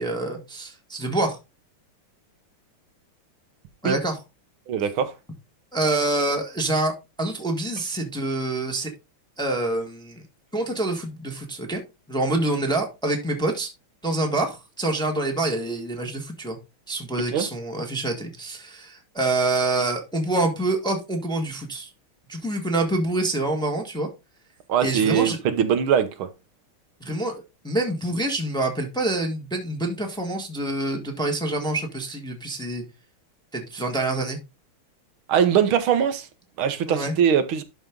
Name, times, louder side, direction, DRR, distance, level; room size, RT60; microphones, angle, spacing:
voice 1, 0.0-1.4 3.8-4.2 5.7-8.9 9.4-10.2 10.5-11.8 12.1-13.7 14.0-16.6 16.9-21.9 22.3-24.1 24.8-25.4 27.0-32.8 33.5-34.4 36.9-37.1, right 2 dB, ahead, 1.4 m, -26 dB
voice 2, 4.7-5.1 17.3-17.5 24.7-26.3 35.3-36.3 36.6-37.6, right 8 dB, 75° right, 1.8 m, -21 dB
12.0 x 4.4 x 3.7 m
omnidirectional pair, 2.4 m